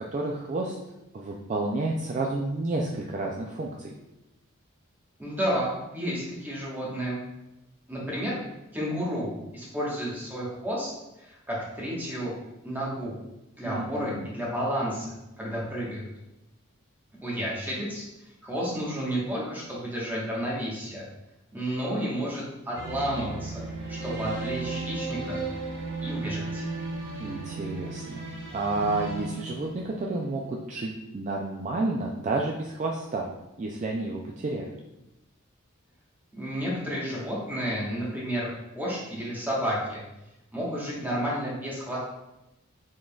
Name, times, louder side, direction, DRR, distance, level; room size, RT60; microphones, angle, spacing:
voice 1, 0.1-0.8 1.1-3.9 13.6-14.3 27.2-28.3 28.5-33.3 33.6-34.7, right 2 dB, 35° right, -1 dB, 0.3 m, -30 dB
voice 2, 5.2-7.2 7.9-8.3 8.7-10.9 11.2-12.3 12.6-13.2 13.6-16.1 17.2-18.0 18.4-21.0 21.5-23.6 23.9-25.4 26.0-26.6 36.3-38.5 38.7-40.0 40.5-42.0, equal, 10° right, -6 dB, 1.2 m, -31 dB
sound 1, 22.7-30.2, right 3 dB, 65° right, 1.2 m, -35 dB
5.1 x 3.7 x 2.3 m, 0.93 s
head